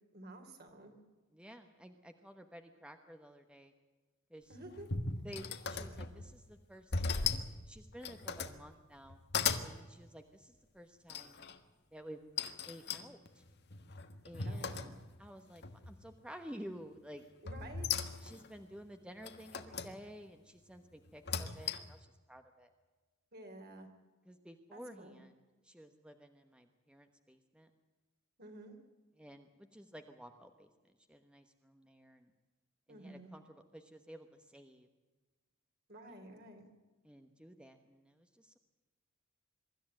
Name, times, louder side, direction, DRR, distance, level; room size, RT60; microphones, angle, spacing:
voice 1, 0.1-1.0 4.5-4.9 14.4-15.0 17.4-18.0 23.3-23.9 24.7-25.2 28.4-28.8 32.9-33.3 35.9-36.6, right 1 dB, 50° right, 4 dB, 3.8 m, -51 dB
voice 2, 1.3-3.7 4.3-4.6 5.2-9.2 9.6-11.4 11.9-12.3 12.7-13.4 14.2-14.8 15.2-17.2 18.2-22.7 24.2-27.7 29.2-30.7 31.1-32.3 32.9-34.9 37.0-38.6, equal, 5° right, 6 dB, 1.1 m, -53 dB
sound 1, 4.5-6.4 6.9-7.5 7.9-8.6 9.0-9.7 11.1-11.6 12.4-15.3 15.6-16.1 17.5-18.5 19.2-19.9 21.1-22.0, left 5 dB, 55° left, 1.4 m, -38 dB
24.0 x 13.5 x 9.0 m, 1.3 s
head